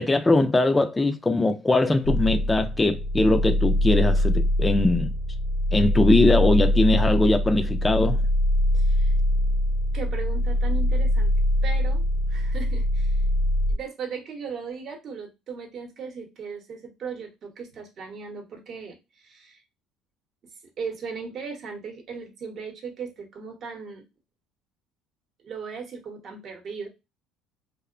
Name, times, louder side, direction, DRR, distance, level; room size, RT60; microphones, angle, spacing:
voice 1, 0.0-5.1 5.7-8.2, left 2 dB, 15° left, 0.3 m, -21 dB
sound 1, 2.0-13.7, left 1 dB, 75° left, 0.6 m, -23 dB
voice 2, 8.7-9.1 9.9-11.3 11.6-13.2 13.7-19.6 20.8-24.0 25.4-26.9, right 5 dB, 45° right, 0.8 m, -37 dB
2.8 x 2.0 x 2.4 m
cardioid pair, 110°, 0 cm